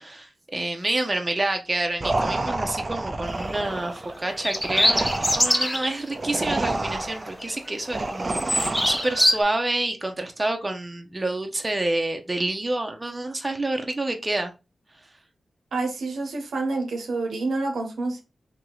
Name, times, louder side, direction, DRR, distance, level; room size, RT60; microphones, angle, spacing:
voice 1, 0.0-14.5, right 2 dB, 30° right, 0.8 m, -28 dB
sound 1, 2.0-9.4, right 2 dB, 45° right, 0.5 m, -29 dB
sound 2, 3.3-3.5 4.3-5.9 6.4-6.5 6.9-7.7 8.0-9.4, equal, 10° left, 0.7 m, -23 dB
voice 2, 15.7-18.2, right 3 dB, 80° right, 0.8 m, -28 dB
2.9 x 2.9 x 3.9 m
cardioid pair, 40°, 0 cm